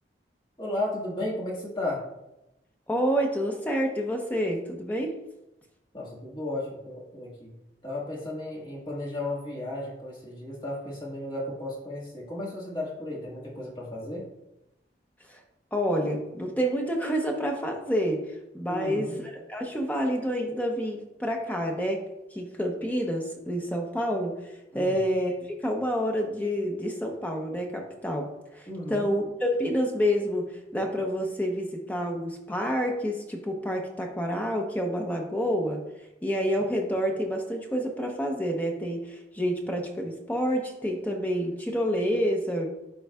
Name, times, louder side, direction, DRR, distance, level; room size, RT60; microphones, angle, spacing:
voice 1, 0.6-2.0 5.9-14.3 18.7-19.2 24.7-25.0 28.7-29.1, left 1 dB, 25° left, -4 dB, 1.7 m, -34 dB
voice 2, 2.9-5.2 15.3-15.4 15.7-22.0 22.3-42.7, equal, 10° left, 1 dB, 0.7 m, -28 dB
11.0 x 3.9 x 2.3 m, 0.91 s
head